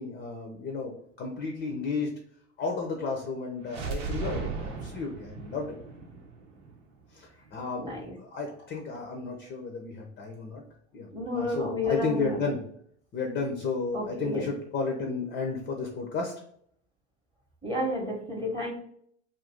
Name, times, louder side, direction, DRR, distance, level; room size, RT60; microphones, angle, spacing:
voice 1, 0.0-2.1 2.6-5.8 7.1-7.9 8.2-10.6 10.9-12.6 13.1-16.3, left 4 dB, 25° left, 2 dB, 0.5 m, -33 dB
sound 1, 3.6-7.5, right 5 dB, 80° right, 0.8 m, -37 dB
voice 2, 7.8-8.1 11.1-12.4 13.9-14.4 17.6-18.7, left 1 dB, 15° right, -1 dB, 0.8 m, -31 dB
2.5 x 2.3 x 3.4 m, 0.65 s
hypercardioid pair, 90°, 36 cm